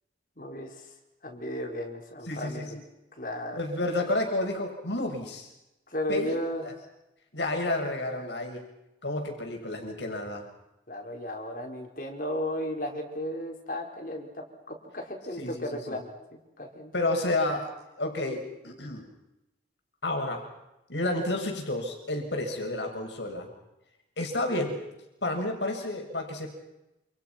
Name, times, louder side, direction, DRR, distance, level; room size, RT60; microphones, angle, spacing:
voice 1, 0.4-0.9 1.2-2.8 3.2-3.6 5.9-6.6 10.9-16.1 16.6-16.9, left 1 dB, 50° left, 2 dB, 5.0 m, -34 dB
voice 2, 2.3-2.6 3.6-5.5 6.1-6.4 6.6-6.7 7.3-8.6 9.0-10.4 15.4-16.0 16.9-17.7 18.0-19.0 20.0-20.4 20.9-23.5 24.2-24.8 25.2-26.5, left 2 dB, 85° left, 3 dB, 6.8 m, -30 dB
29.0 x 29.0 x 6.0 m, 0.93 s
head